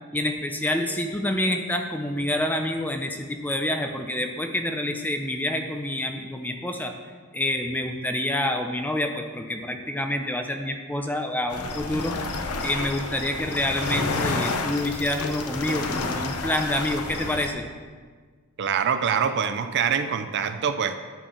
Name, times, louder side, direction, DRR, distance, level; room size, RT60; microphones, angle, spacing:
voice 1, 0.1-6.9 7.3-12.1 12.6-17.7, left 1 dB, 10° left, 5 dB, 0.7 m, -27 dB
sound 1, 11.5-17.5, left 3 dB, 85° left, 0.9 m, -30 dB
voice 2, 18.6-20.9, right 7 dB, 50° right, 9 dB, 0.5 m, -24 dB
10.5 x 4.6 x 7.0 m, 1.5 s
head